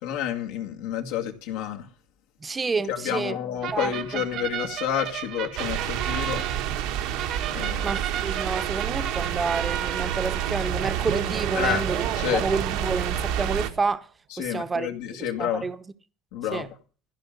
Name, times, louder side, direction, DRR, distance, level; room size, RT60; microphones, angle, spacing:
voice 1, 0.0-1.9 2.9-6.4 7.5-8.0 11.5-11.9 12.1-12.4 14.3-15.7 16.3-16.7, left 10 dB, 75° left, 2.3 m, -29 dB
voice 2, 2.4-3.4 3.7-4.2 7.8-12.0 12.3-14.1 14.4-14.9 15.4-15.8 16.5-16.7, right 4 dB, 25° right, 1.0 m, -29 dB
sound 1, 3.6-14.0, right 10 dB, 55° right, 1.3 m, -35 dB
sound 2, 5.6-13.7, right 10 dB, 75° right, 1.5 m, -29 dB
15.0 x 5.5 x 9.3 m
supercardioid pair, 85°, 0 cm